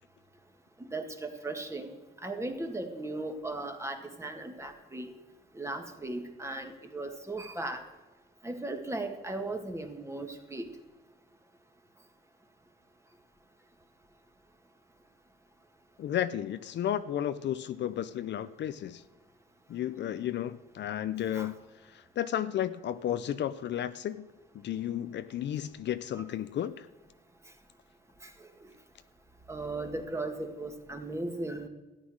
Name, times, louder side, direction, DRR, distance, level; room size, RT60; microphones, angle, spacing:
voice 1, 0.9-1.9 2.2-5.1 5.6-7.8 8.4-10.6 21.4-21.5 29.5-31.7, right 2 dB, 15° right, 5 dB, 1.9 m, -37 dB
voice 2, 16.0-19.0 19.7-21.5 21.9-24.3 24.6-26.9, left 11 dB, 65° left, 12 dB, 0.6 m, -33 dB
13.5 x 9.4 x 6.3 m, 1.2 s
cardioid pair, 90°, 20 cm